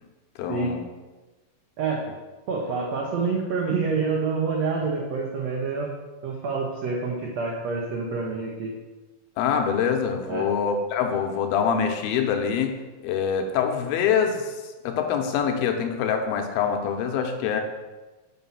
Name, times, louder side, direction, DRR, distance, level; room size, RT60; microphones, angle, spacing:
voice 1, 0.4-0.8 9.4-12.8 13.0-14.5 14.8-17.6, left 7 dB, 80° left, 4 dB, 2.5 m, -25 dB
voice 2, 1.8-2.2 2.5-5.9 6.2-8.7 10.3-10.5, right 4 dB, 90° right, -1 dB, 1.5 m, -27 dB
6.0 x 5.7 x 5.6 m, 1.2 s
omnidirectional pair, 4.3 m